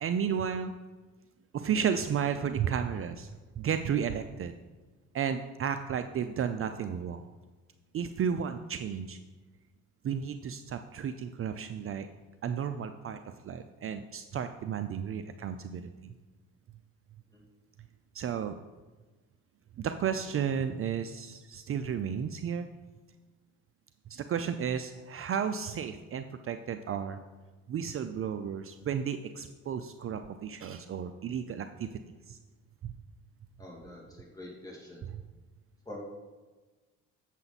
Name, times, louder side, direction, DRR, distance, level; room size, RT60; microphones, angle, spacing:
voice 1, 0.0-0.7 1.5-4.6 5.1-7.2 7.9-9.2 10.0-12.1 12.4-16.1 18.1-18.5 19.8-22.7 24.1-27.2 27.7-31.9 32.3-32.4 32.8-32.9 35.0-35.2, right 7 dB, 45° right, 8 dB, 0.5 m, -33 dB
voice 2, 33.6-35.0 35.9-36.0, left 1 dB, 10° left, -4 dB, 2.6 m, -46 dB
7.8 x 7.3 x 4.1 m, 1.3 s
cardioid pair, 90°, 30 cm